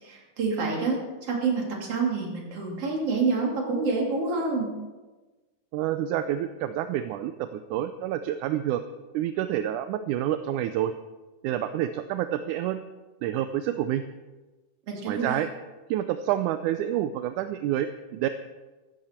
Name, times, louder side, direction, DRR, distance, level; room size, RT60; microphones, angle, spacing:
voice 1, 0.0-4.7 14.9-15.3, right 4 dB, 45° right, -1 dB, 3.5 m, -27 dB
voice 2, 5.7-8.8 9.1-10.9 11.4-12.8 13.2-14.0 15.1-15.5 15.9-18.3, right 12 dB, 80° right, 10 dB, 1.9 m, -28 dB
15.5 x 14.5 x 4.3 m, 1.2 s
omnidirectional pair, 3.8 m